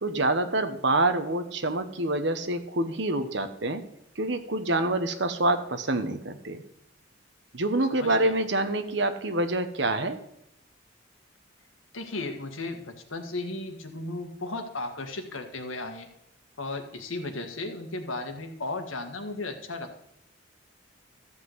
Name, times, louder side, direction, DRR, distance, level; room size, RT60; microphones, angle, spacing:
voice 1, 0.0-3.8 4.2-6.6 7.5-10.2, right 2 dB, 60° right, 8 dB, 1.2 m, -26 dB
voice 2, 7.9-8.4 11.9-16.1 16.6-20.0, left 2 dB, 85° left, 5 dB, 1.7 m, -35 dB
14.0 x 5.7 x 7.9 m, 0.78 s
head